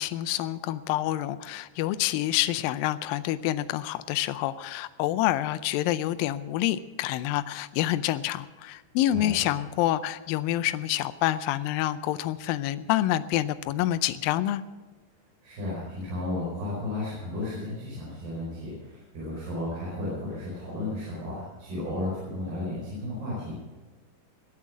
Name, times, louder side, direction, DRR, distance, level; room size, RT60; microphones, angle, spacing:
voice 1, 0.0-14.6, left 14 dB, 80° left, 14 dB, 2.1 m, -27 dB
voice 2, 15.4-23.5, left 1 dB, 70° right, -6 dB, 6.8 m, -33 dB
22.0 x 8.6 x 6.2 m, 1.3 s
omnidirectional pair, 4.7 m